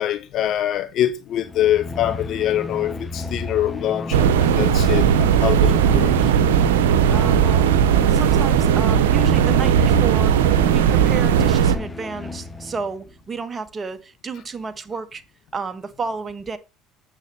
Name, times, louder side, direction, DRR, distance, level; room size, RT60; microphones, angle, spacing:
voice 1, 0.0-6.3, left 11 dB, 55° left, 1.0 m, -24 dB
sound 1, 1.3-13.0, left 2 dB, 20° left, 1.0 m, -32 dB
sound 2, 4.1-11.7, right 8 dB, 80° right, 0.9 m, -17 dB
voice 2, 7.1-7.7 8.1-10.4 10.7-15.2 15.5-16.6, right 4 dB, 30° right, 1.5 m, -31 dB
8.7 x 7.5 x 4.4 m
hypercardioid pair, 70°, 0 cm